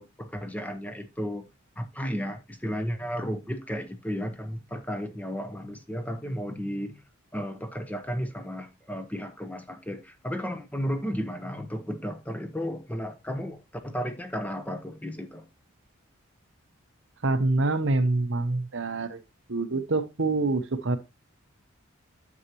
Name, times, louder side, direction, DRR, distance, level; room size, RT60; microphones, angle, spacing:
voice 1, 0.0-1.5 1.8-7.0 7.3-15.4, equal, 5° left, 0.8 m, -33 dB
voice 2, 17.2-19.2 19.5-21.0, right 2 dB, 60° right, 0.8 m, -26 dB
9.7 x 7.2 x 3.0 m
head